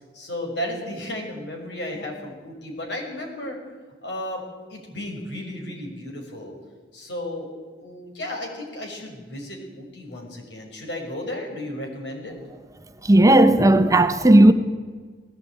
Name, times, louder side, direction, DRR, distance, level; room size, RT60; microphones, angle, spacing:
voice 1, 0.1-3.6 4.0-6.5 6.9-7.5 7.8-12.3, left 1 dB, 70° left, 6.1 m, -34 dB
voice 2, 13.1-14.5, right 1 dB, 20° right, 0.9 m, -14 dB
19.5 x 16.5 x 9.4 m
head